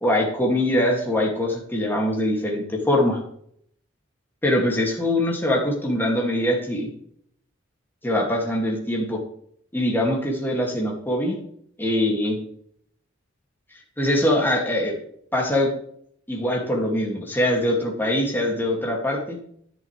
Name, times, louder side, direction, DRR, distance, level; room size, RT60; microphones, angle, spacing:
voice 1, 0.0-3.2 4.4-6.9 8.0-9.2 9.7-11.4 11.8-12.4 14.0-14.9 15.3-15.7 16.3-19.4, left 1 dB, 10° left, -1 dB, 2.4 m, -23 dB
11.0 x 10.5 x 3.4 m, 0.65 s
head